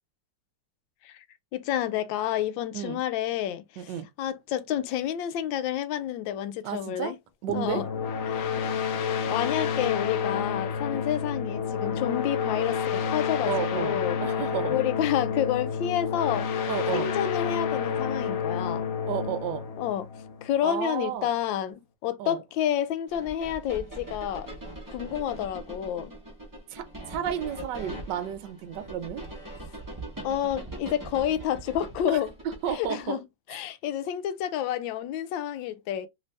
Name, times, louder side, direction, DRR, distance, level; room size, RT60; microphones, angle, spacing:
voice 1, 1.5-3.6 4.2-7.1 7.5-7.8 8.3-8.6 9.3-14.2 14.7-16.5 16.9-18.8 19.8-20.1 20.4-24.5 24.9-26.1 30.2-32.3 32.7-33.2 33.5-36.1, left 10 dB, 85° left, 1.3 m, -29 dB
voice 2, 3.8-4.1 6.6-7.2 7.4-7.8 13.5-14.8 16.7-17.1 19.0-19.7 20.6-21.3 22.2-22.4 26.7-29.3 32.1-32.2 32.6-33.2, right 10 dB, 70° right, 1.3 m, -32 dB
sound 1, 7.5-20.8, left 6 dB, 70° left, 0.8 m, -29 dB
sound 2, 23.1-33.1, right 1 dB, 15° right, 0.9 m, -41 dB
3.4 x 2.6 x 3.3 m
omnidirectional pair, 2.0 m